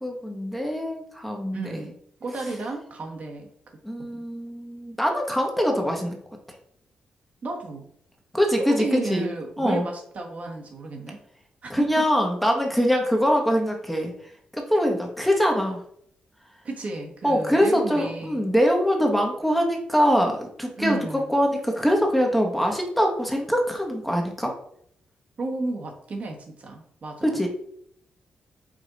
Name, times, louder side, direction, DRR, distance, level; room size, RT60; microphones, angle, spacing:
voice 1, 0.0-1.8 3.8-6.2 6.5-6.6 8.3-9.3 9.6-9.9 11.7-15.8 17.2-24.5 27.2-27.5, equal, 5° left, 1 dB, 1.0 m, -23 dB
voice 2, 1.5-1.9 2.2-3.5 4.1-4.2 7.4-7.9 8.6-11.2 11.6-12.1 16.6-18.5 20.8-21.4 25.4-27.4, right 3 dB, 55° right, 2 dB, 1.3 m, -33 dB
5.0 x 2.7 x 3.9 m, 0.68 s
cardioid pair, 75°, 3 cm